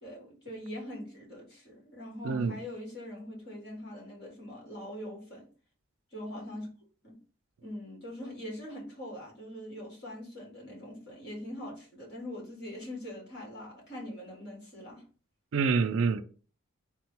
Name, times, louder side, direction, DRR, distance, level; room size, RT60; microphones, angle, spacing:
voice 1, 0.0-5.5 6.1-6.7 7.0-7.2 7.6-15.0, left 1 dB, 50° left, 1.8 m, -42 dB
voice 2, 2.2-2.6 15.5-16.2, right 5 dB, 65° right, 0.4 m, -26 dB
3.8 x 2.2 x 4.4 m
head